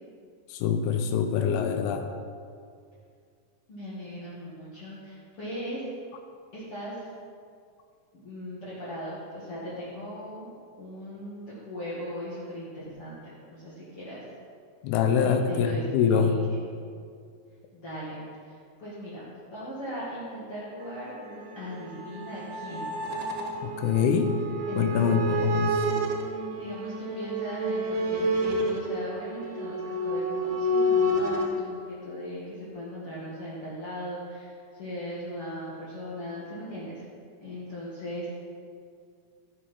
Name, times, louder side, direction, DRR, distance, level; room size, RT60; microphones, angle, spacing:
voice 1, 0.5-2.1 14.8-16.3 23.6-24.3 24.8-25.7, left 7 dB, 85° left, 5 dB, 2.7 m, -24 dB
voice 2, 3.7-5.8 6.5-7.1 8.1-10.5 10.8-14.2 15.2-16.6 17.7-18.2 18.4-19.2 19.5-23.0 24.7-25.5 26.5-37.0 37.4-38.4, equal, 40° left, -10 dB, 2.5 m, -38 dB
sound 1, 20.8-31.5, equal, 65° right, 2.3 m, -29 dB
14.5 x 6.5 x 5.4 m, 2.2 s
omnidirectional pair, 4.5 m